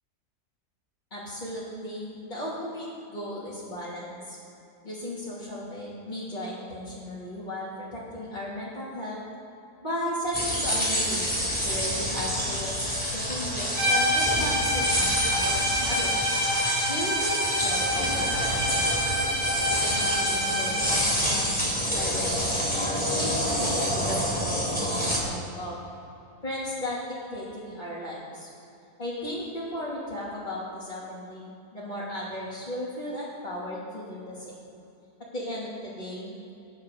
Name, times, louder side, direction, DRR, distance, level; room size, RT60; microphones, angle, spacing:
voice 1, 1.1-4.4 4.8-9.2 9.8-16.4 16.9-19.1 19.7-25.8 26.4-28.5 29.0-34.6 35.3-36.5, left 1 dB, 30° left, -11 dB, 3.0 m, -36 dB
sound 1, 10.3-25.2, equal, 5° left, 3.0 m, -28 dB
sound 2, 13.7-21.2, equal, 70° right, 4.4 m, -27 dB
21.5 x 10.5 x 4.1 m, 2.7 s
omnidirectional pair, 1.7 m